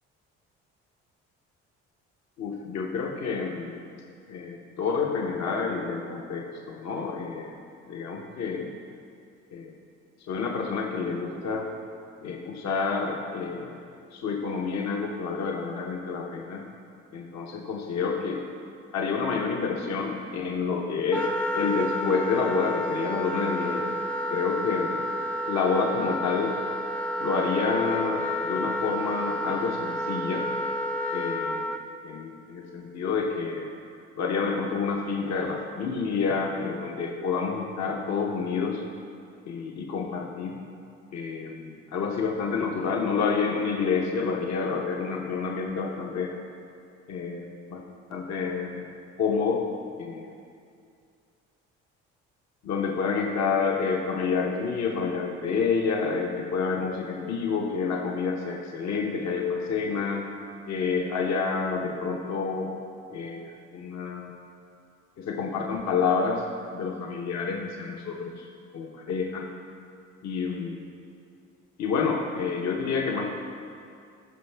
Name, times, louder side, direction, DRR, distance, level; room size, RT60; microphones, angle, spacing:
voice 1, 2.4-3.8 4.3-7.5 7.9-8.7 9.5-9.7 10.3-11.7 12.2-13.8 14.1-16.6 17.1-18.4 18.9-21.3 21.5-23.9 24.3-25.0 25.4-26.5 27.2-30.4 31.1-31.7 32.0-33.7 34.2-38.8 39.5-40.6 41.1-46.3 47.1-47.8 48.1-48.8 49.2-49.6 50.0-50.3 52.6-60.3 60.7-62.8 63.1-64.4 65.2-66.4 66.7-68.5 68.7-69.5 70.2-70.9 71.8-73.3, left 5 dB, 60° left, 0 dB, 0.9 m, -28 dB
Wind instrument woodwind instrument, 21.1-31.8, equal, 5° left, 0.5 m, -30 dB
13.0 x 5.4 x 3.4 m, 2.4 s
supercardioid pair, 65°, 31 cm